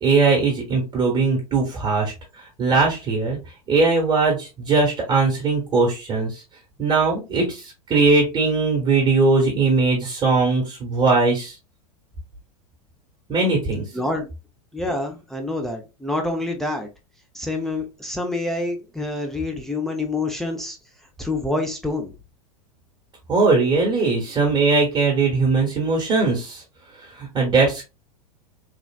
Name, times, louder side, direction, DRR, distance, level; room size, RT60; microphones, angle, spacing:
voice 1, 0.0-3.4 3.7-6.4 6.8-11.6 13.3-13.8 23.3-26.6 27.1-27.9, right 3 dB, 25° right, 1.1 m, -20 dB
voice 2, 13.9-14.3 14.7-16.9 17.3-20.8 21.2-22.1, left 2 dB, ahead, 0.6 m, -27 dB
3.4 x 2.4 x 2.2 m
figure-of-eight pair, 95°, 20 cm